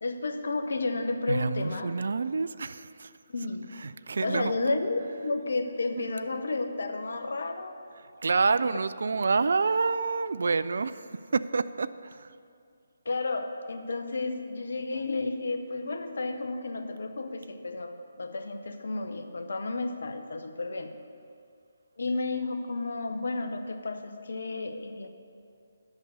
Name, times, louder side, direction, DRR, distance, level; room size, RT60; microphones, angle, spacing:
voice 1, 0.0-1.9 3.3-3.7 4.2-7.7 13.0-21.0 22.0-25.1, left 3 dB, 60° left, 7 dB, 0.8 m, -32 dB
voice 2, 1.3-3.1 3.8-4.5 6.0-6.1 8.2-11.1 11.3-12.3, right 4 dB, 60° right, 15 dB, 0.3 m, -28 dB
8.1 x 6.6 x 8.2 m, 2.4 s
figure-of-eight pair, 145°, 0 cm